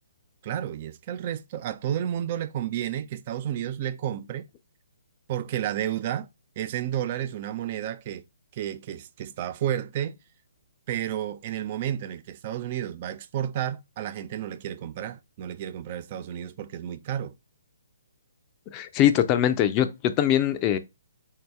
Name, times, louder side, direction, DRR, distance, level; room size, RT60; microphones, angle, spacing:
voice 1, 0.4-4.5 5.3-6.3 6.6-8.2 8.5-10.2 10.9-17.3, right 11 dB, 40° right, 0.3 m, -31 dB
voice 2, 18.7-20.8, left 11 dB, 25° left, 0.5 m, -22 dB
4.3 x 2.8 x 3.3 m
figure-of-eight pair, 140°, 0 cm